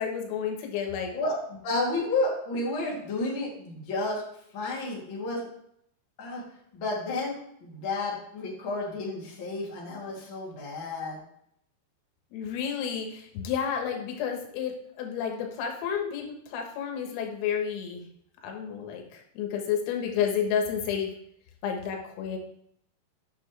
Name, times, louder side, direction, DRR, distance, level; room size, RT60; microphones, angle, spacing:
voice 1, 0.0-1.1 12.3-18.0 18.4-21.1 21.6-22.4, left 7 dB, 85° left, 2 dB, 4.1 m, -31 dB
voice 2, 1.1-4.2 4.5-5.4 6.2-6.4 6.7-7.3 7.6-11.2, left 2 dB, 35° left, -5 dB, 2.5 m, -31 dB
11.0 x 6.6 x 3.3 m, 0.71 s
omnidirectional pair, 5.8 m